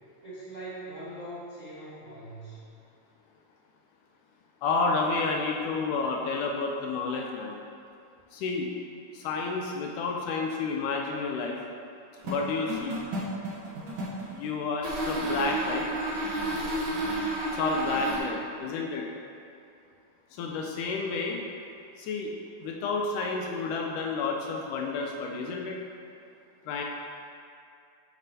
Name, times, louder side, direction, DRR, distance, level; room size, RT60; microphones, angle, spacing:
voice 1, 0.2-2.6, right 1 dB, 65° right, -13 dB, 0.7 m, -41 dB
voice 2, 4.6-7.6 8.3-8.7 9.1-11.6 12.3-13.0 14.3-15.9 17.5-19.1 20.3-21.4 22.0-22.3 22.6-25.8 26.7-26.8, left 4 dB, 80° left, 0 dB, 1.9 m, -30 dB
sound 1, 12.2-14.3 14.8-18.2, right 1 dB, 85° right, 1.1 m, -31 dB
7.3 x 6.0 x 2.7 m, 2.5 s
omnidirectional pair, 3.9 m